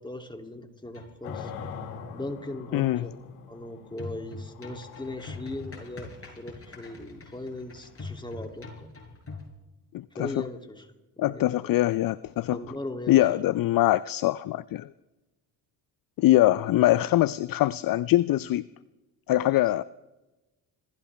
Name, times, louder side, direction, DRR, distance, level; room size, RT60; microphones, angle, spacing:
voice 1, 0.0-1.5 2.1-3.1 3.5-6.1 6.4-8.9 10.1-10.9 11.2-11.5 12.5-13.3, left 1 dB, 10° left, 4 dB, 2.7 m, -38 dB
sound 1, 0.8-2.0 4.0-9.5, left 3 dB, 30° left, 7.0 m, -43 dB
sound 2, 1.2-8.1, left 6 dB, 85° left, 1.8 m, -44 dB
voice 2, 2.7-3.1 9.9-10.5 11.2-12.6 13.1-14.9 16.2-18.6 19.3-19.8, left 15 dB, 45° left, 18 dB, 0.5 m, -23 dB
26.5 x 14.5 x 3.4 m, 1.1 s
hypercardioid pair, 50°, 47 cm